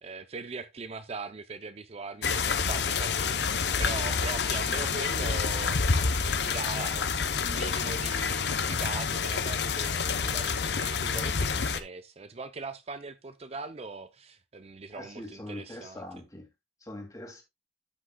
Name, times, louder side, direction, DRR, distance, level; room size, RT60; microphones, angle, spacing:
voice 1, 0.0-3.5 3.8-7.1 7.3-16.0, right 4 dB, 35° right, 0.5 m, -40 dB
sound 1, 2.2-11.8, left 5 dB, 70° left, 0.7 m, -28 dB
voice 2, 14.9-16.5 16.8-17.4, left 1 dB, 20° left, 2.3 m, -42 dB
12.5 x 6.2 x 2.2 m
head